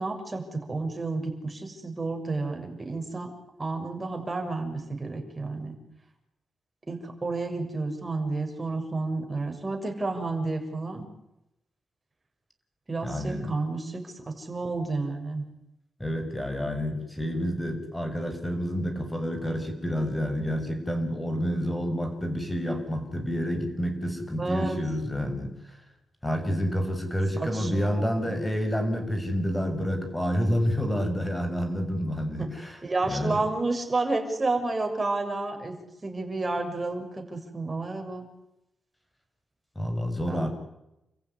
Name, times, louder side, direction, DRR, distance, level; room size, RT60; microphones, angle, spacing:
voice 1, 0.0-3.3 3.6-5.8 6.9-11.1 12.9-15.4 24.4-24.8 27.4-28.4 32.4-32.5 32.8-35.8 36.0-38.3 40.3-40.5, right 3 dB, 25° right, 3 dB, 6.8 m, -31 dB
voice 2, 13.0-13.5 16.0-25.5 26.2-32.8 33.1-33.4 39.7-40.5, equal, 10° left, 7 dB, 6.6 m, -29 dB
29.5 x 15.0 x 9.9 m, 0.90 s
cardioid pair, 80°, 0 cm